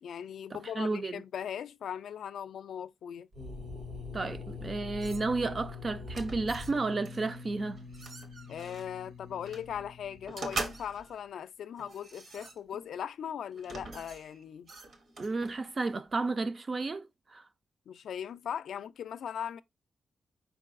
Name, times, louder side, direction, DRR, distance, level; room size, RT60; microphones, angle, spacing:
voice 1, 0.0-3.3 8.5-14.7 17.9-19.6, left 8 dB, 85° left, 0.4 m, -39 dB
voice 2, 0.5-1.2 4.1-7.8 15.2-17.1 17.3-17.4, right 3 dB, 30° right, 0.4 m, -32 dB
sound 1, 3.3-11.1, left 4 dB, 65° right, 1.5 m, -44 dB
sound 2, 5.0-5.5 6.1-6.8 7.0-7.3 7.7-8.9 9.5-9.6 10.3-11.2 11.8-12.9 13.5-15.6, right 2 dB, 50° right, 1.0 m, -42 dB
4.6 x 4.5 x 2.5 m
wide cardioid pair, 145°, 0 cm